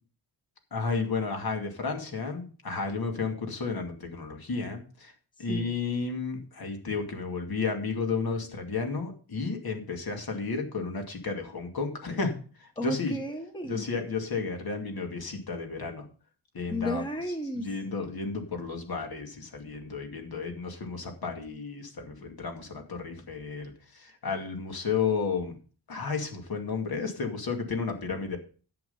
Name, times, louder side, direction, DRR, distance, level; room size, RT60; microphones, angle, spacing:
voice 1, 0.7-5.1 5.4-12.3 12.6-13.2 13.7-16.1 16.5-17.0 17.6-25.6 25.9-28.4, left 4 dB, 55° left, 4 dB, 2.4 m, -32 dB
voice 2, 12.8-13.8 16.7-17.7, left 1 dB, 10° left, 5 dB, 1.3 m, -33 dB
10.5 x 7.6 x 5.5 m, 0.39 s
wide cardioid pair, 140°, 44 cm